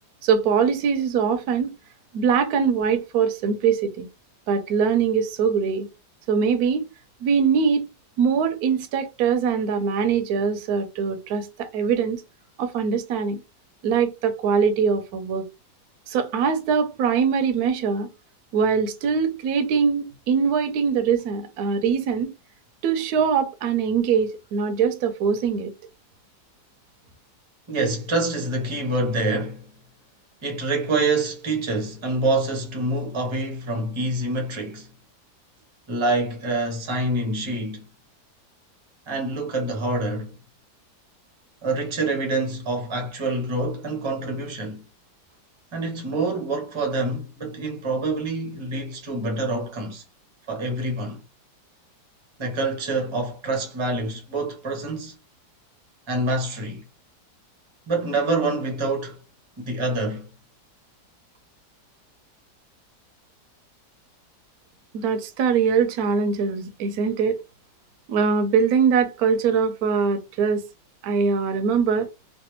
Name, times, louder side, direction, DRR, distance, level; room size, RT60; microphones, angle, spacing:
voice 1, 0.2-1.7 2.1-4.1 4.5-5.9 6.3-6.8 7.2-7.9 8.2-12.2 12.6-13.4 13.8-15.4 16.1-18.1 18.5-22.3 22.8-25.7 64.9-67.4 68.1-70.6 71.0-72.1, right 6 dB, 70° right, 1.1 m, -22 dB
voice 2, 27.7-29.7 30.4-34.9 35.9-37.8 39.1-40.3 41.6-44.8 45.7-50.0 50.5-51.2 52.4-55.1 56.1-56.8 57.9-59.2 59.6-60.3, right 2 dB, 25° right, 0.7 m, -26 dB
3.2 x 2.5 x 3.0 m
omnidirectional pair, 1.8 m